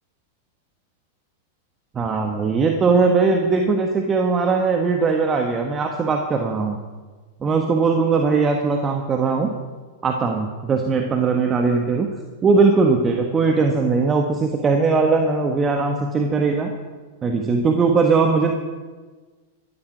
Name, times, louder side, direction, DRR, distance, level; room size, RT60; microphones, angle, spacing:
voice 1, 1.9-6.8 7.4-9.5 10.0-12.1 12.4-16.7 17.2-18.5, right 4 dB, 25° right, 3 dB, 1.4 m, -19 dB
13.0 x 12.5 x 6.1 m, 1.4 s
figure-of-eight pair, 95°, 0 cm